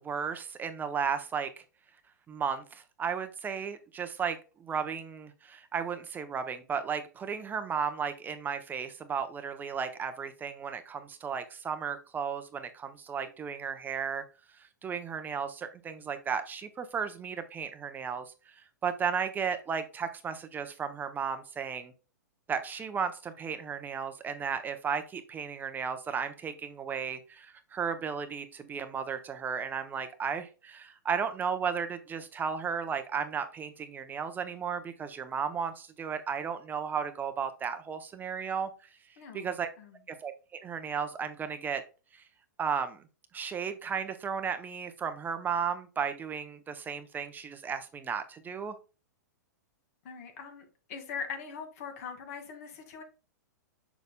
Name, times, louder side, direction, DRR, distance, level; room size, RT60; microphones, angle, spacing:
voice 1, 0.0-1.5 2.3-14.2 14.8-18.3 18.8-21.9 22.5-38.7 39.3-39.7 40.2-41.8 42.6-43.0 43.3-48.7, right 6 dB, 20° right, 0.7 m, -34 dB
voice 2, 39.2-39.5 39.8-40.0 50.0-53.0, left 6 dB, 55° left, 2.1 m, -41 dB
6.9 x 6.5 x 2.2 m
hypercardioid pair, 115°, 10 cm